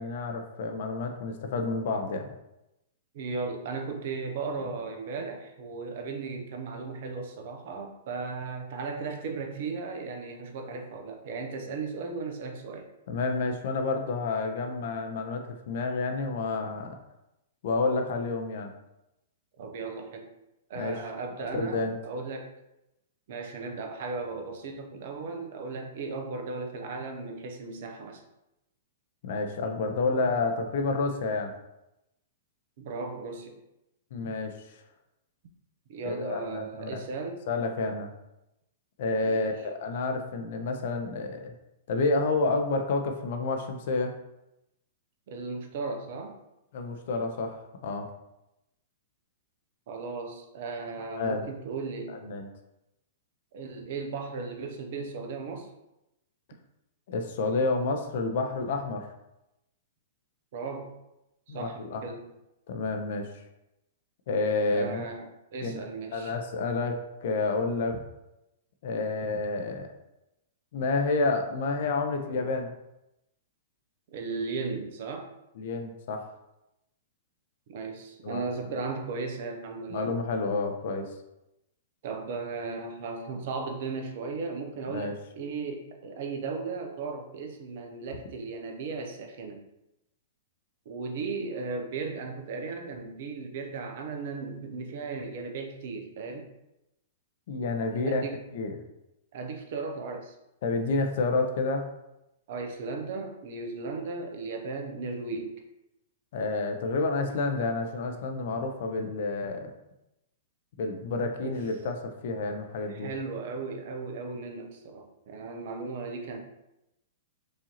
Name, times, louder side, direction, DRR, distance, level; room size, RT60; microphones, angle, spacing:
voice 1, 0.0-2.3 13.1-17.0 17.6-18.7 20.8-21.0 21.6-21.9 29.2-31.5 34.1-34.5 36.0-37.0 37.5-38.1 39.0-41.5 41.9-44.1 46.7-48.1 51.0-51.4 52.1-52.5 57.1-59.1 61.5-62.0 62.7-63.3 64.3-65.0 65.6-65.9 66.1-68.0 68.8-69.9 70.7-72.7 75.6-76.3 78.2-78.4 79.9-81.1 84.9-85.1 97.5-98.2 98.5-98.8 100.6-101.9 106.3-109.7 110.8-113.1, left 3 dB, 60° left, 5 dB, 0.6 m, -29 dB
voice 2, 3.1-12.9 19.6-20.3 20.7-22.5 23.3-28.2 32.8-33.5 35.9-37.4 39.2-39.6 45.3-46.4 49.9-52.2 53.5-55.7 60.5-60.9 61.5-62.2 64.7-66.3 74.1-75.3 77.7-80.1 82.0-89.6 90.9-96.5 97.9-98.4 99.3-100.4 102.5-105.6 111.4-111.6 112.9-116.4, right 4 dB, 60° right, 4 dB, 0.7 m, -36 dB
4.8 x 2.7 x 2.9 m, 0.90 s
hypercardioid pair, 115°, 0 cm